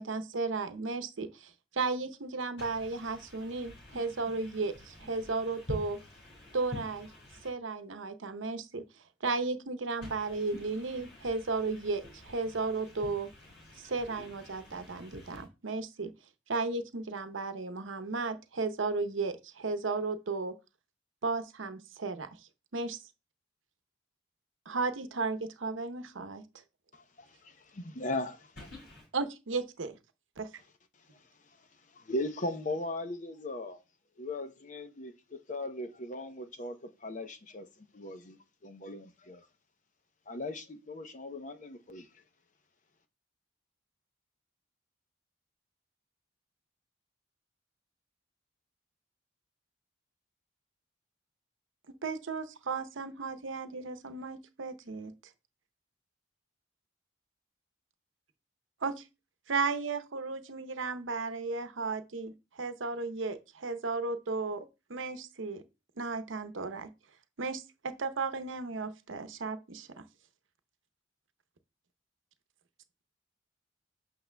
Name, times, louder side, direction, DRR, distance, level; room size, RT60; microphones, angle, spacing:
voice 1, 0.0-6.0 6.5-7.1 7.4-8.8 9.2-13.3 13.8-16.1 16.5-20.6 21.2-22.3 22.7-23.0 24.7-26.4 29.1-29.9 30.4-30.5 52.0-55.1 58.8-59.1 59.5-65.6 66.0-66.9 67.4-70.0, right 4 dB, 85° right, 0.8 m, -34 dB
voice 2, 2.6-6.8 7.1-7.5 10.0-15.4 28.6-29.0, left 1 dB, 60° left, 4.5 m, -47 dB
voice 3, 26.9-28.5 32.0-33.8 34.2-36.8 37.0-37.7 37.9-39.4 40.3-42.1, left 2 dB, 40° left, 0.7 m, -38 dB
8.2 x 6.5 x 2.2 m
head